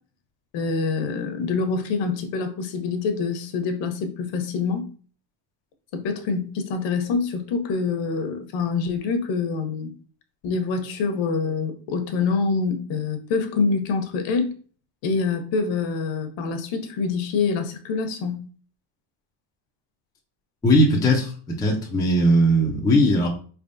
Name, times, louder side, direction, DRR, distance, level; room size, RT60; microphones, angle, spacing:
voice 1, 0.5-4.9 5.9-9.9 10.4-14.5 15.0-18.4, left 4 dB, 60° left, 7 dB, 0.9 m, -25 dB
voice 2, 20.6-23.3, equal, 10° left, 0 dB, 0.4 m, -19 dB
4.4 x 3.5 x 2.6 m, 0.41 s
cardioid pair, 155°, 50 cm